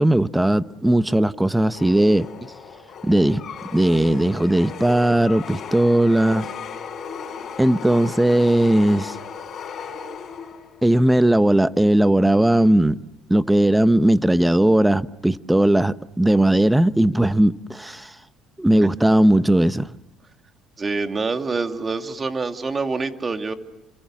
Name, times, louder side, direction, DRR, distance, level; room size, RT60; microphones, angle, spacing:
voice 1, 0.0-2.3 3.0-3.4 3.7-6.5 7.6-9.2 10.8-13.0 13.3-18.1 18.6-19.9, right 1 dB, 5° right, 1.0 m, -18 dB
sound 1, 1.7-10.8, left 5 dB, 50° left, 4.6 m, -36 dB
voice 2, 20.8-23.5, right 4 dB, 30° right, 2.4 m, -26 dB
30.0 x 26.5 x 7.5 m
supercardioid pair, 85°, 0 cm